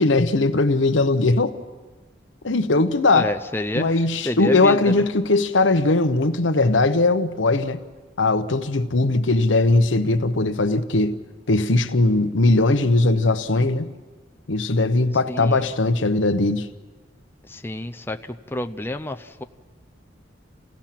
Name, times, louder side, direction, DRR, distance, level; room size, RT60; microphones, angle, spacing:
voice 1, 0.0-1.6 2.4-3.3 3.7-7.8 8.2-11.2 11.5-13.9 14.5-16.7, left 2 dB, 80° left, 1.0 m, -19 dB
voice 2, 3.1-4.0 4.2-5.0 15.3-15.7 17.5-18.2 18.5-19.4, left 1 dB, 10° left, 0.6 m, -29 dB
29.0 x 16.5 x 5.9 m
head